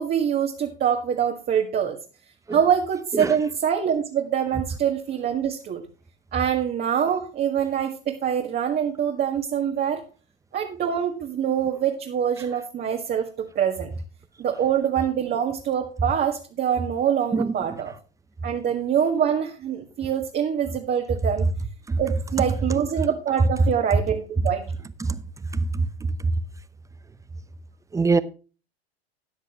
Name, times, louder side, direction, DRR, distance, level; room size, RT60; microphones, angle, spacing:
voice 1, 0.0-2.0 2.5-5.8 6.3-10.0 10.5-13.9 14.4-17.9 18.4-21.5 22.0-24.6, right 8 dB, 30° right, 1.9 m, -25 dB
voice 2, 2.5-2.6 3.2-3.3 17.3-17.5 21.9-22.0 25.0-25.2 25.7-25.9 27.9-28.2, right 4 dB, 10° right, 0.8 m, -22 dB
13.5 x 9.8 x 3.1 m
hypercardioid pair, 95°, 32 cm